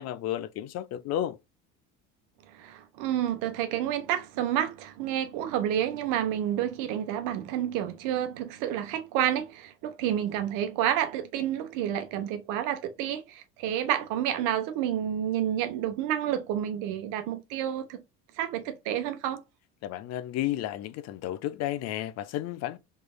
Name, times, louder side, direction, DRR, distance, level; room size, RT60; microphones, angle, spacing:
voice 1, 0.0-1.4 19.8-22.8, left 12 dB, 55° left, 0.5 m, -32 dB
voice 2, 2.5-18.0 18.4-19.4, right 11 dB, 75° right, 0.9 m, -29 dB
3.3 x 3.2 x 2.2 m
supercardioid pair, 110°, 31 cm